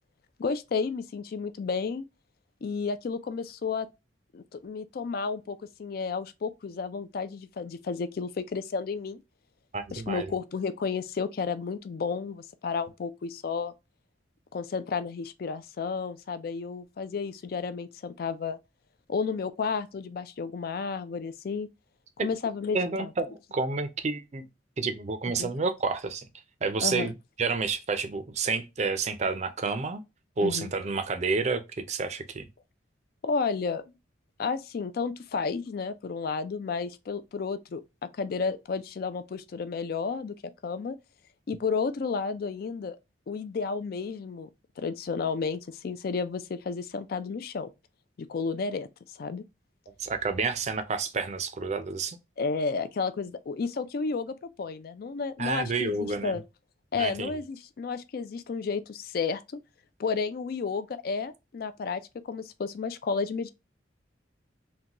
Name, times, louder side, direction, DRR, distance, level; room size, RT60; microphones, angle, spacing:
voice 1, 0.4-2.0 2.6-3.9 4.3-9.2 9.9-13.7 14.5-18.6 19.1-21.7 22.2-23.1 25.4-25.5 26.8-27.1 30.4-30.7 33.2-33.9 34.4-40.4 40.6-41.0 41.5-43.0 43.3-44.5 44.8-47.7 48.2-49.4 52.4-56.4 56.9-59.6 60.0-63.5, left 5 dB, 50° left, 0.3 m, -32 dB
voice 2, 9.7-10.3 22.7-24.4 24.8-26.2 26.6-30.0 30.4-32.5 50.0-52.2 55.4-56.4 57.0-57.3, right 4 dB, 35° right, 0.4 m, -29 dB
3.8 x 2.2 x 2.8 m
head